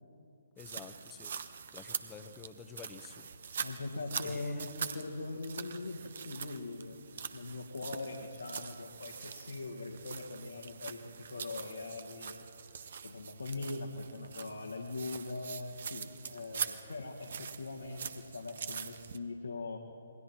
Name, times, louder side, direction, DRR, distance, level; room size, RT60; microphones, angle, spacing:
voice 1, 0.6-1.4 1.7-3.3 4.2-4.7, left 7 dB, 15° left, 9 dB, 1.1 m, -50 dB
sound 1, 0.6-19.2, right 7 dB, 50° right, 1.1 m, -44 dB
voice 2, 3.6-7.0 7.3-12.4 13.0-19.8, left 3 dB, 70° left, 0 dB, 2.2 m, -41 dB
27.5 x 22.0 x 4.5 m, 2.7 s
figure-of-eight pair, 135°, 0 cm